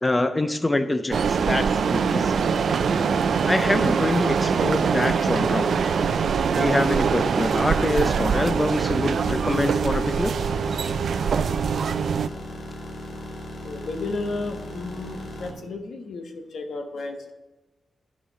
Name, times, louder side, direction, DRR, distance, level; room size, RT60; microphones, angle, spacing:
voice 1, 0.0-2.5 3.5-5.9 6.6-10.4, left 2 dB, 20° left, 9 dB, 0.4 m, -25 dB
sound 1, 1.1-12.3, right 6 dB, 80° right, 0.3 m, -23 dB
sound 2, 1.4-15.5, left 1 dB, 65° left, 1.7 m, -37 dB
voice 2, 13.6-17.3, left 3 dB, 90° left, 5 dB, 1.0 m, -33 dB
11.0 x 5.0 x 5.6 m, 1.1 s
wide cardioid pair, 125°, 0 cm